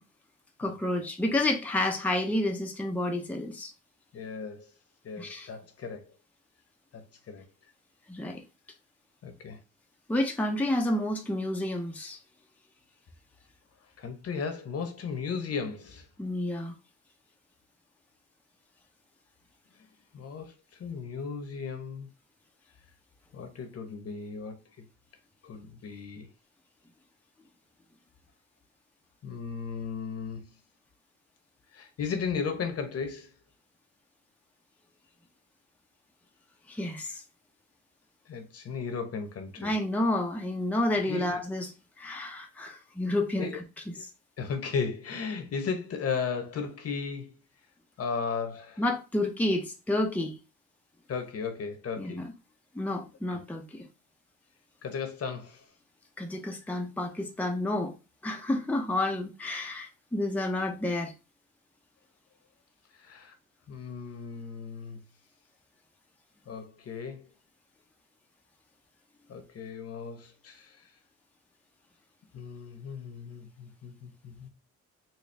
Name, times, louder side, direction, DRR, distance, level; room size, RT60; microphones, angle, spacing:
voice 1, 0.6-3.7 5.2-5.5 8.1-8.4 10.1-12.2 16.2-16.7 36.7-37.2 39.6-41.7 42.0-43.5 48.8-50.4 52.0-52.3 52.7-53.8 56.2-57.9 58.2-61.1, left 1 dB, 5° left, 0.7 m, -30 dB
voice 2, 4.1-4.7 5.0-6.1 6.9-7.4 9.2-9.6 14.0-16.1 20.1-22.1 23.3-24.6 25.4-26.3 29.2-30.5 31.7-33.3 38.3-39.7 40.9-41.4 43.4-43.6 43.9-44.0 44.4-47.4 48.0-48.8 51.1-52.2 53.3-53.4 54.8-55.6 62.9-63.3 63.7-65.0 66.5-67.3 69.3-70.8 72.3-74.5, left 5 dB, 55° left, 1.0 m, -36 dB
4.3 x 2.3 x 3.3 m
cardioid pair, 90°, 30 cm